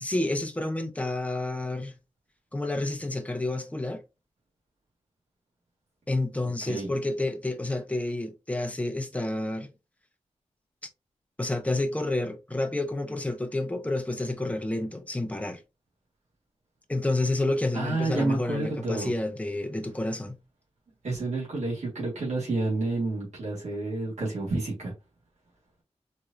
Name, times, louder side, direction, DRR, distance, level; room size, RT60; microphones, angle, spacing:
voice 1, 0.0-1.9 2.5-4.0 6.1-9.7 11.4-15.6 16.9-20.4, left 2 dB, 10° left, 0.7 m, -29 dB
voice 2, 17.7-19.1 21.0-24.9, right 2 dB, 80° right, 1.7 m, -29 dB
4.4 x 2.6 x 2.5 m
wide cardioid pair, 130°, 12 cm